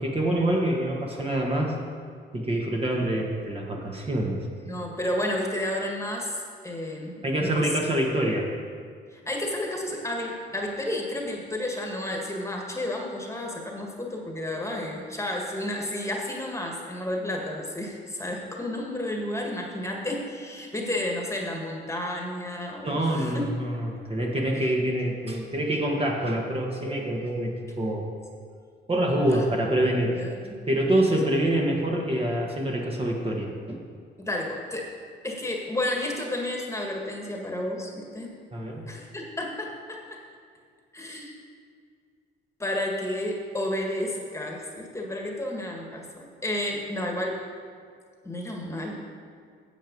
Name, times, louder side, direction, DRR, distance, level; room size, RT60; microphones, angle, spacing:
voice 1, 0.0-1.7 2.3-4.4 7.2-8.5 22.8-28.0 28.9-30.2 30.7-33.8 38.5-38.9, right 1 dB, 30° right, -1 dB, 1.5 m, -26 dB
voice 2, 4.6-7.8 9.1-23.4 24.5-24.7 29.1-29.4 30.0-30.6 34.2-34.9 35.2-38.4 38.9-40.2 40.9-41.3 42.6-47.4 48.2-49.1, left 1 dB, 15° left, 0 dB, 1.6 m, -32 dB
9.1 x 7.6 x 5.3 m, 2.1 s
cardioid pair, 90°, 20 cm